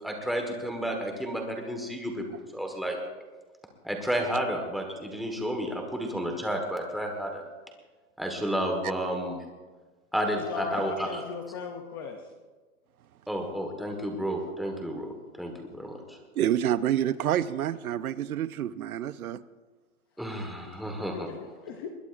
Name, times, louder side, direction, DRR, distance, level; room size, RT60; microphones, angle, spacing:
voice 1, 0.0-3.0 3.8-7.4 8.2-9.4 10.1-11.2 13.3-16.0 20.2-21.3, equal, ahead, 2 dB, 1.3 m, -31 dB
voice 2, 10.3-12.2 20.7-20.8 21.1-21.9, left 5 dB, 20° left, 5 dB, 0.5 m, -37 dB
voice 3, 16.4-19.4, right 11 dB, 90° right, 16 dB, 0.7 m, -28 dB
21.0 x 20.0 x 2.5 m, 1.3 s
hypercardioid pair, 160°, 42 cm